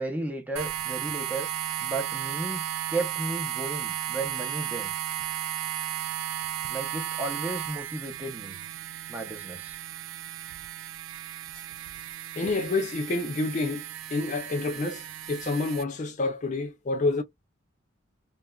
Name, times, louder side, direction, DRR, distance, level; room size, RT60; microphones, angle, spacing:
voice 1, 0.0-1.5 1.8-4.9 6.7-8.6 9.1-9.8, right 2 dB, 10° right, 0.6 m, -34 dB
sound 1, 0.6-15.8, right 11 dB, 75° right, 0.3 m, -35 dB
voice 2, 12.3-17.2, left 3 dB, 35° left, 0.4 m, -28 dB
2.9 x 2.3 x 2.2 m
head